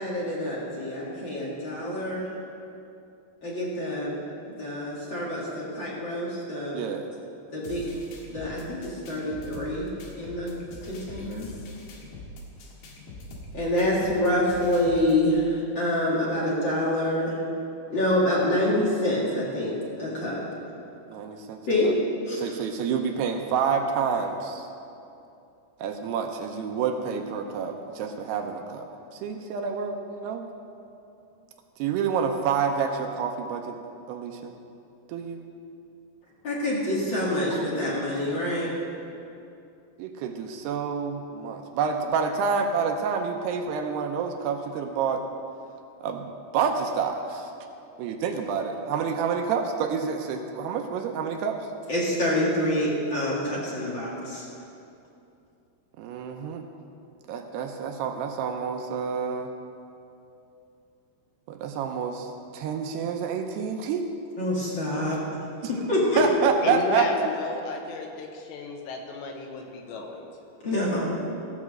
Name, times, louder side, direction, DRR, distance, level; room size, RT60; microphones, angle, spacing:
voice 1, 0.0-2.2 3.4-4.2 4.5-6.8 7.5-7.9 8.3-9.9 10.2-10.5 10.9-11.5 13.5-17.3 17.9-20.4 21.7-21.9 22.3-22.5 36.4-38.7 51.9-54.4 64.4-65.4 65.7-66.2 70.6-71.1, left 1 dB, 40° left, -6 dB, 1.8 m, -26 dB
voice 2, 6.7-7.1 21.1-21.9 22.4-24.7 25.8-30.5 31.8-33.8 34.1-34.5 35.1-35.4 37.5-37.7 40.0-45.2 46.0-47.5 48.0-51.6 56.0-56.6 57.3-59.5 61.5-62.3 62.5-64.0 66.2-67.1, right 6 dB, 80° right, 4 dB, 2.6 m, -28 dB
sound 1, 7.6-15.2, left 1 dB, 70° left, 3.4 m, -43 dB
voice 3, 66.6-70.3, left 4 dB, 85° left, 2 dB, 3.3 m, -33 dB
15.5 x 6.0 x 7.4 m, 2.6 s
omnidirectional pair, 5.0 m